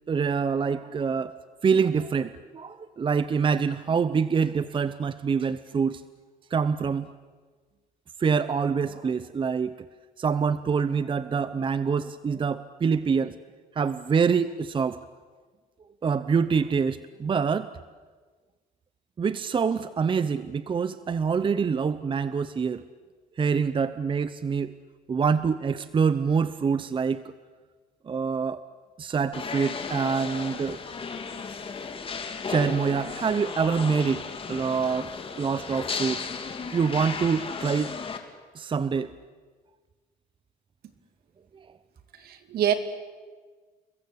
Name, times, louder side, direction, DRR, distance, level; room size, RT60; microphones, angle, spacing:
voice 1, 0.1-1.3 1.6-6.0 6.5-7.1 8.2-9.7 10.2-13.4 13.7-15.0 16.0-17.7 19.2-22.8 23.4-24.7 25.1-27.2 28.1-28.6 29.0-30.8 32.5-34.2 34.5-36.3 36.7-38.0 38.5-39.1, right 6 dB, 30° right, 14 dB, 0.9 m, -25 dB
sound 1, 29.3-38.2, left 5 dB, 35° left, 3.0 m, -35 dB
voice 2, 42.1-42.7, right 10 dB, 65° right, 9 dB, 2.8 m, -25 dB
29.5 x 22.0 x 8.4 m, 1.4 s
cardioid pair, 110°, 17 cm